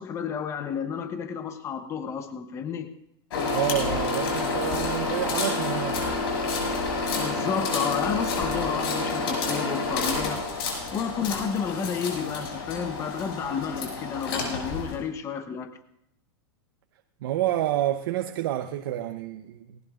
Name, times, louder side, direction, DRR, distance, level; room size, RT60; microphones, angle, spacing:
voice 1, 0.0-2.9 7.2-10.4 10.9-15.7, left 7 dB, 20° left, 0.9 m, -31 dB
sound 1, 3.3-14.9, left 3 dB, 80° left, 6.3 m, -29 dB
voice 2, 3.5-6.0 17.2-19.8, right 13 dB, 65° right, 0.8 m, -29 dB
19.5 x 19.0 x 2.5 m
supercardioid pair, 150°, 13 cm